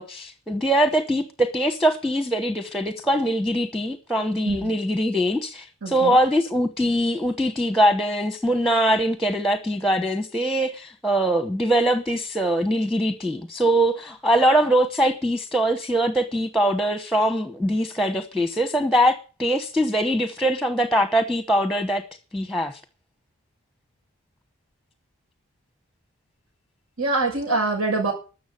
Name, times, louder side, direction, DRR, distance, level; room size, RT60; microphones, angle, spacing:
voice 1, 0.0-22.0 22.3-22.8, right 1 dB, ahead, 0.9 m, -22 dB
voice 2, 5.8-6.2 27.0-28.1, right 3 dB, 85° right, 6.8 m, -24 dB
13.5 x 7.1 x 9.8 m
head